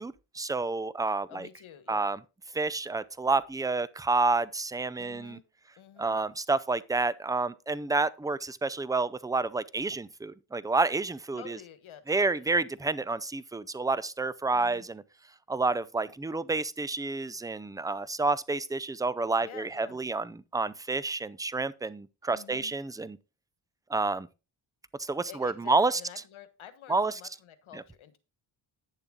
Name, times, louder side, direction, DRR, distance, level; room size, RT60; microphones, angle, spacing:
voice 1, 0.0-1.5 1.9-2.2 2.5-5.4 6.0-11.6 12.1-15.0 15.5-23.2 23.9-24.3 25.0-26.0 26.9-27.1 27.7-27.8, right 3 dB, 10° right, 0.4 m, -29 dB
voice 2, 1.3-2.1 5.0-5.4 5.8-6.2 11.3-12.5 14.5-14.9 19.3-20.0 22.3-22.7 25.3-28.2, left 9 dB, 75° left, 1.4 m, -49 dB
9.9 x 6.9 x 3.7 m
cardioid pair, 75°, 48 cm